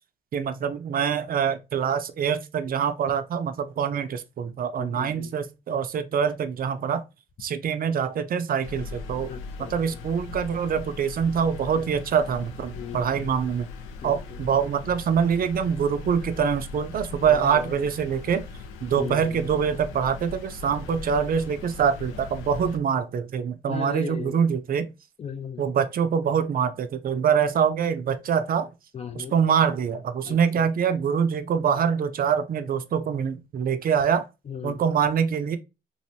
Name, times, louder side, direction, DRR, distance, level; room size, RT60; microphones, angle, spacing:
voice 1, 0.3-7.0 7.4-9.3 9.7-13.7 14.0-18.4 18.8-24.9 25.6-28.7 29.1-34.3 34.6-35.6, right 7 dB, 45° right, 0.5 m, -25 dB
voice 2, 4.8-5.3 9.3-10.0 12.7-13.3 14.0-14.4 17.3-17.9 18.9-19.4 23.6-24.4 25.2-25.7 28.9-29.4 30.2-30.7 34.5-34.8, left 7 dB, 35° left, 0.4 m, -37 dB
sound 1, 8.6-22.8, left 4 dB, 90° left, 0.5 m, -40 dB
3.2 x 2.5 x 2.7 m
cardioid pair, 90°, 20 cm